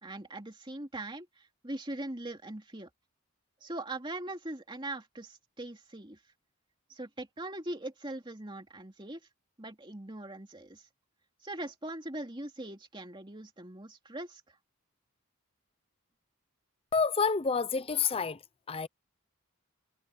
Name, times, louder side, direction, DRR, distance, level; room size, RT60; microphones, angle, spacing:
voice 1, 0.0-2.9 3.6-6.2 6.9-9.2 9.6-10.9 11.4-14.6, right 1 dB, 20° right, 2.7 m, -41 dB
voice 2, 16.9-18.4 18.7-18.9, left 5 dB, 25° left, 0.6 m, -28 dB
head